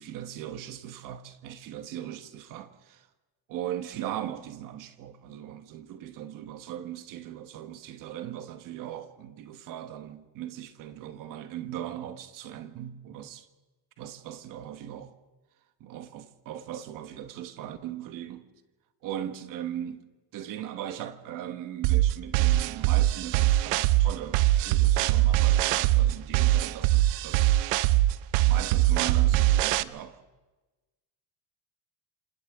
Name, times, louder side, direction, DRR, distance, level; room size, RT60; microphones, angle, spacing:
voice 1, 0.0-3.1 3.5-13.4 14.0-15.1 15.8-18.5 19.0-20.0 20.3-27.6 28.4-30.2, right 11 dB, 45° right, 1.3 m, -39 dB
sound 1, 21.8-29.8, right 15 dB, 90° right, 0.8 m, -22 dB
27.0 x 26.5 x 3.6 m
cardioid pair, 180°, 44 cm